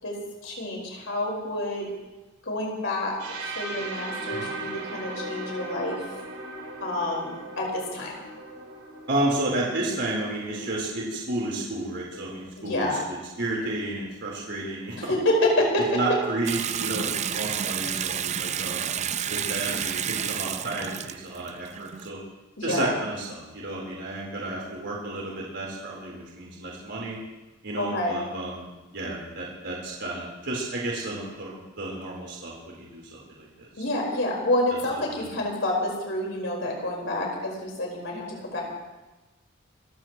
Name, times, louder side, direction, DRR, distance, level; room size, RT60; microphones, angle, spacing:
voice 1, 0.0-1.9 2.4-3.2 3.5-6.0 6.8-8.1 12.6-13.0 14.9-16.2 22.6-22.9 27.8-28.2 33.8-38.6, left 1 dB, 70° left, -1 dB, 4.9 m, -28 dB
sound 1, 3.2-11.0, right 2 dB, 85° right, 4.4 m, -38 dB
voice 2, 9.1-15.1 15.9-17.1 17.3-18.8 19.3-21.0 21.2-22.2 22.6-27.2 27.6-28.6 28.9-33.7, right 2 dB, 60° right, -4 dB, 4.1 m, -31 dB
Water tap faucet / Sink (filling or washing) / Bathtub (filling or washing), 16.5-22.1, right 9 dB, 35° right, 0.5 m, -30 dB
28.0 x 15.5 x 3.2 m, 1.1 s
head